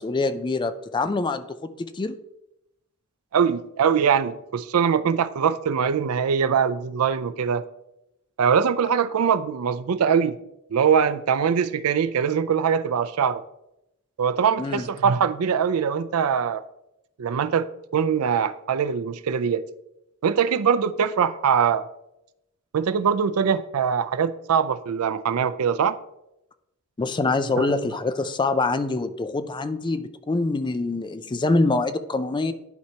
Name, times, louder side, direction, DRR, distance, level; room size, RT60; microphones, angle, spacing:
voice 1, 0.0-1.6 1.9-2.2 14.6-14.9 27.0-32.5, left 3 dB, 20° left, 0.4 m, -25 dB
voice 2, 3.3-7.6 8.4-10.4 10.7-13.4 14.2-16.6 17.2-17.7 17.9-19.6 20.2-21.9 22.7-26.0 27.6-27.7, right 7 dB, 85° right, 0.4 m, -22 dB
11.5 x 4.5 x 2.8 m
head